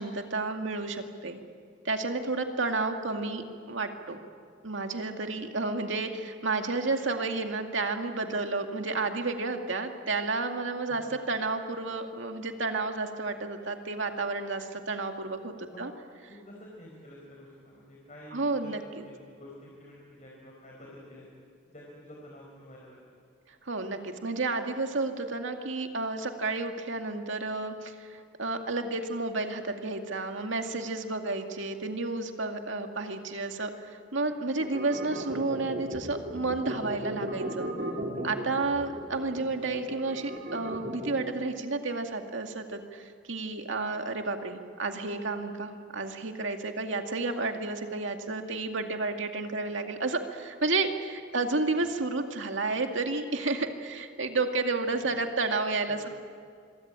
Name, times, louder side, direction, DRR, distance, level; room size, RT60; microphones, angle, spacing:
voice 1, 0.0-1.4 1.8-4.2 4.6-15.9 18.3-18.8 23.7-37.7 38.2-56.1, right 3 dB, 75° right, 4 dB, 2.2 m, -31 dB
voice 2, 10.9-11.3 15.7-15.9 16.3-18.7 19.0-21.3 21.7-23.1 38.6-38.9 55.6-56.1, left 1 dB, 35° left, -3 dB, 4.6 m, -49 dB
sound 1, 34.6-41.3, right 1 dB, 50° right, 3.3 m, -36 dB
26.5 x 23.0 x 8.9 m, 2.2 s
head